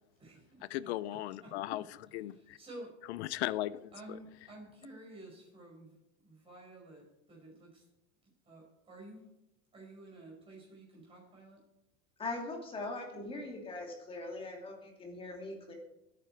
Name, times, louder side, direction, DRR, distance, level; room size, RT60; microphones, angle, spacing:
voice 1, 0.2-1.6 2.3-3.0 3.9-6.0 6.2-7.9 8.4-9.3 9.7-11.6, right 1 dB, 15° right, 5.5 m, -52 dB
voice 2, 0.7-2.6 3.1-3.9, left 15 dB, 55° left, 0.7 m, -37 dB
voice 3, 12.2-15.7, left 2 dB, 15° left, 2.6 m, -41 dB
20.5 x 9.2 x 4.6 m
supercardioid pair, 165°, 41 cm